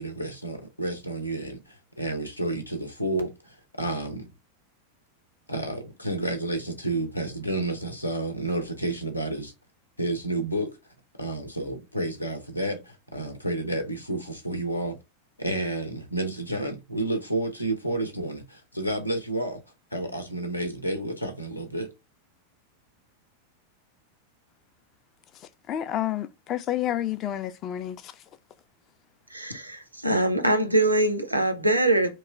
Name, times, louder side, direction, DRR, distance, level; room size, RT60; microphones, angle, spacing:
voice 1, 0.0-4.3 5.5-9.5 10.0-10.7 11.2-15.0 15.4-19.6 19.9-21.9, right 1 dB, 85° left, 0.7 m, -30 dB
voice 2, 25.3-28.3, left 12 dB, 35° left, 0.4 m, -30 dB
voice 3, 29.3-32.1, right 1 dB, 85° right, 0.5 m, -23 dB
3.0 x 2.1 x 3.5 m
figure-of-eight pair, 90°, 0 cm